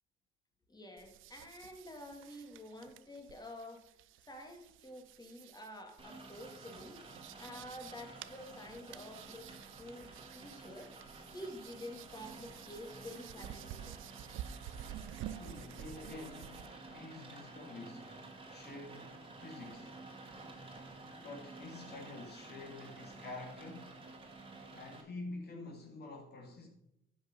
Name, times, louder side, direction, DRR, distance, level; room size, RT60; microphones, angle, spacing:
voice 1, 0.7-3.8 4.3-7.0 7.4-10.9 11.3-14.1, left 1 dB, 20° left, 2.4 m, -49 dB
sound 1, 1.0-16.7, right 11 dB, 80° right, 0.5 m, -51 dB
Rain, 6.0-25.0, right 2 dB, 25° right, 2.2 m, -52 dB
voice 2, 15.4-18.2 18.5-20.0 21.1-23.9 24.7-26.7, left 2 dB, 55° left, 2.4 m, -48 dB
10.5 x 5.9 x 5.3 m
cardioid pair, 90°, 20 cm